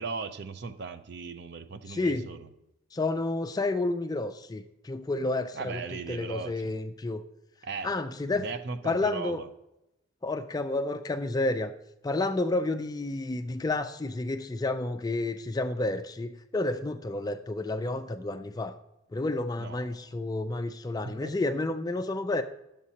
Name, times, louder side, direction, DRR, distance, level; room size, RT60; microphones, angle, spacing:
voice 1, 0.0-2.5 5.5-6.7 7.6-7.9 8.3-9.5 19.6-20.2 21.0-21.3, right 4 dB, 55° right, 10 dB, 0.5 m, -38 dB
voice 2, 1.9-2.3 2.9-5.8 6.1-7.2 7.8-8.5 8.8-9.4 10.2-11.7 12.0-18.8 19.1-22.4, left 2 dB, 20° left, 8 dB, 0.3 m, -30 dB
11.0 x 7.2 x 2.8 m, 0.88 s
head